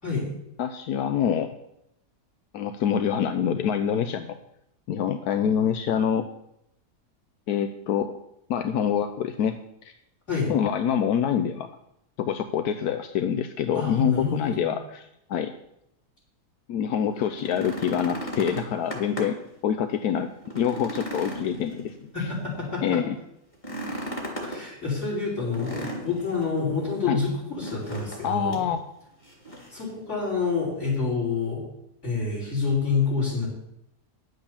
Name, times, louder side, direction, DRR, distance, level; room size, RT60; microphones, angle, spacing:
voice 1, 0.6-1.5 2.5-4.3 4.9-6.3 7.5-8.1 8.5-10.0 10.5-11.7 12.2-15.5 16.7-19.4 19.6-22.3 22.8-23.2 27.1-27.2 28.2-28.8, left 8 dB, 85° left, 8 dB, 1.2 m, -26 dB
voice 2, 13.7-14.7 22.1-23.0 24.4-27.3 27.6-28.6 29.7-31.7 32.0-33.5, left 4 dB, 50° left, -4 dB, 5.7 m, -27 dB
sound 1, 17.2-19.5 19.9-20.0 20.4-22.3 23.5-24.6 25.5-26.4 27.6-28.2 28.5-28.7 29.2-29.8 30.9-31.0, right 1 dB, 30° left, 3.3 m, -36 dB
10.5 x 8.0 x 7.1 m, 0.79 s
omnidirectional pair, 1.6 m